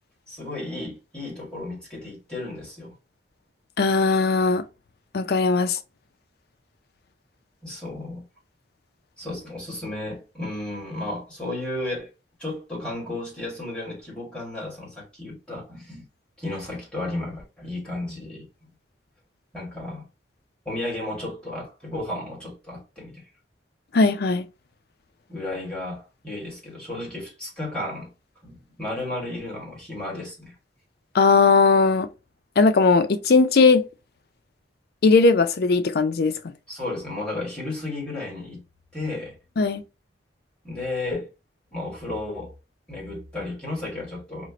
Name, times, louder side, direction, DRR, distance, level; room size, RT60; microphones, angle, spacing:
voice 1, 0.3-2.9 7.6-8.2 9.2-12.1 12.4-16.0 16.4-18.5 19.5-20.1 20.7-23.2 25.3-28.1 28.4-30.5 36.7-38.6 38.9-39.4 40.6-41.3 41.7-42.5 42.9-44.5, left 2 dB, 5° left, 1.9 m, -33 dB
voice 2, 3.8-4.6 5.1-5.8 23.9-24.5 31.1-32.1 32.6-33.8 35.0-36.3 39.6-39.8, left 4 dB, 55° left, 0.4 m, -18 dB
4.4 x 2.5 x 2.8 m
head